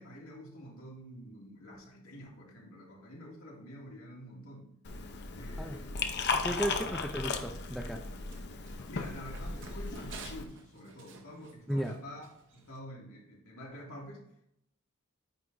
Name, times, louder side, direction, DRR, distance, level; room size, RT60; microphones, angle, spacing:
voice 1, 0.0-4.7 5.4-6.1 6.4-6.9 8.7-14.5, equal, 70° left, -2 dB, 2.1 m, -48 dB
Liquid, 4.8-10.4, left 4 dB, 50° left, 0.7 m, -36 dB
voice 2, 6.4-8.0 11.7-12.0, equal, ahead, 3 dB, 0.4 m, -34 dB
Run, 7.6-12.8, right 5 dB, 55° right, 0.9 m, -54 dB
9.4 x 3.5 x 3.9 m, 0.76 s
head